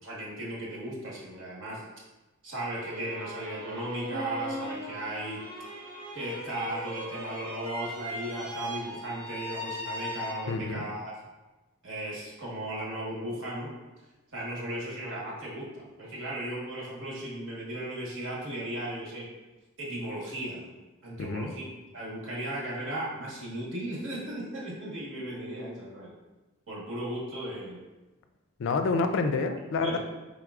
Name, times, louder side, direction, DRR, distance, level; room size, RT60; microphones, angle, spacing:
voice 1, 0.0-1.8 2.4-5.4 6.1-11.1 11.8-13.7 14.3-19.3 19.8-20.7 21.0-21.6 21.9-26.1 26.7-27.8 29.8-30.0, right 1 dB, 60° right, -5 dB, 1.3 m, -36 dB
sound 1, 2.6-10.8, equal, 85° right, 0.9 m, -39 dB
voice 2, 10.5-10.9 21.2-21.5 28.6-30.0, left 4 dB, 60° left, 7 dB, 0.3 m, -28 dB
4.6 x 3.7 x 2.4 m, 1.1 s
head